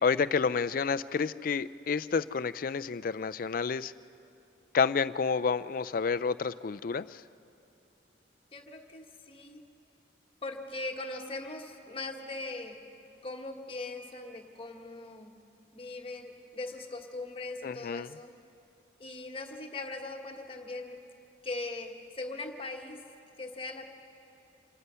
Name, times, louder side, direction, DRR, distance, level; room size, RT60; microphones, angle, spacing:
voice 1, 0.0-3.9 4.7-7.2 17.6-18.1, left 5 dB, 50° left, 14 dB, 0.4 m, -29 dB
voice 2, 8.5-9.6 10.4-12.8 13.2-15.3 15.7-18.3 19.0-21.0 21.4-23.0 23.4-23.9, left 2 dB, 30° left, 3 dB, 1.4 m, -40 dB
27.0 x 19.5 x 5.6 m, 2.8 s
head